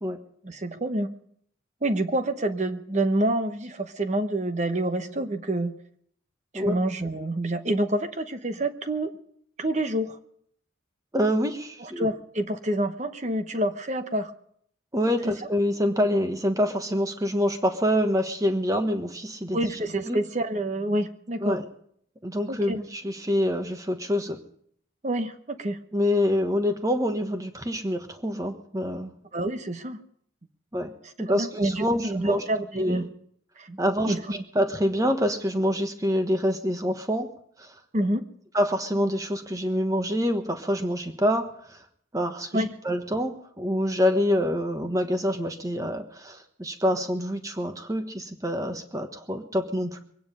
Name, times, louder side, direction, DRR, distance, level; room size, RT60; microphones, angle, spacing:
voice 1, 0.4-1.1 1.8-5.8 6.5-9.1 9.6-10.2 11.8-14.3 15.2-15.5 19.5-21.6 22.5-22.8 25.0-25.8 29.3-30.0 31.3-33.1 33.6-33.8 34.1-34.4 37.9-38.3 42.5-42.7, right 1 dB, 35° right, 9 dB, 1.0 m, -27 dB
voice 2, 11.1-12.1 14.9-19.6 20.1-20.2 21.4-21.6 22.2-24.4 25.9-29.1 30.7-30.9 31.2-32.4 32.7-33.0 33.8-37.3 37.6-37.7 38.5-41.8 42.1-50.0, equal, 15° right, 7 dB, 1.3 m, -26 dB
23.5 x 9.6 x 5.5 m, 0.65 s
head